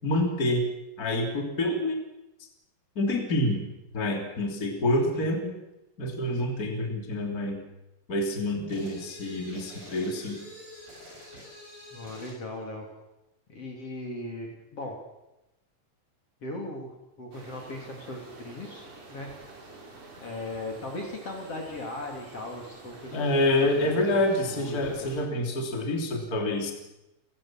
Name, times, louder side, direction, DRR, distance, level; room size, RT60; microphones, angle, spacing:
voice 1, 0.0-0.6 1.0-2.0 2.9-3.6 3.9-5.5 6.0-7.6 8.1-10.4 23.1-26.7, left 1 dB, 25° left, 2 dB, 3.4 m, -27 dB
voice 2, 4.7-5.3 11.9-12.9 13.5-15.0 16.4-19.3 20.2-23.3 23.6-25.1, left 2 dB, 45° left, 1 dB, 3.9 m, -38 dB
sound 1, 8.7-12.4, left 1 dB, 85° right, 8.0 m, -46 dB
sound 2, 17.3-25.2, right 2 dB, 60° right, 6.1 m, -48 dB
30.0 x 15.5 x 7.5 m, 0.95 s
omnidirectional pair, 4.0 m